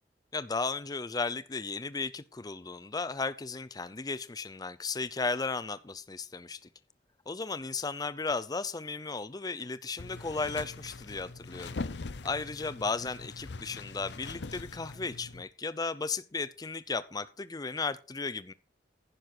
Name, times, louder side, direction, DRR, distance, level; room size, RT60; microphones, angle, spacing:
voice 1, 0.3-6.6 7.3-11.8 12.2-18.5, left 4 dB, 20° left, 0.5 m, -35 dB
sound 1, 10.0-15.4, left 3 dB, 75° left, 0.7 m, -42 dB
11.0 x 9.8 x 4.4 m
head